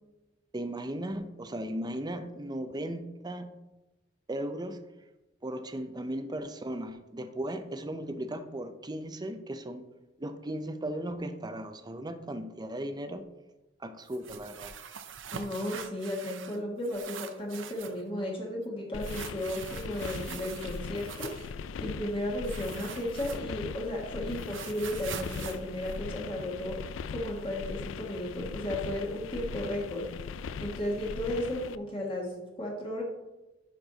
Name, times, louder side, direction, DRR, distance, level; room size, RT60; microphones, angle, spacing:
voice 1, 0.5-3.5 4.3-4.8 5.4-9.9 10.2-13.3 13.8-14.7, right 1 dB, 20° right, 9 dB, 0.6 m, -36 dB
sound 1, 14.1-16.6 16.8-18.0 19.0-21.5 22.4-23.7 24.0-26.7, right 7 dB, 75° right, 0.6 m, -43 dB
voice 2, 15.3-21.4 21.8-26.8 27.1-30.1 30.6-33.0, left 1 dB, 30° left, -2 dB, 1.6 m, -34 dB
sound 2, 18.9-31.8, left 5 dB, 80° left, 0.4 m, -40 dB
11.5 x 4.6 x 3.9 m, 1.0 s
head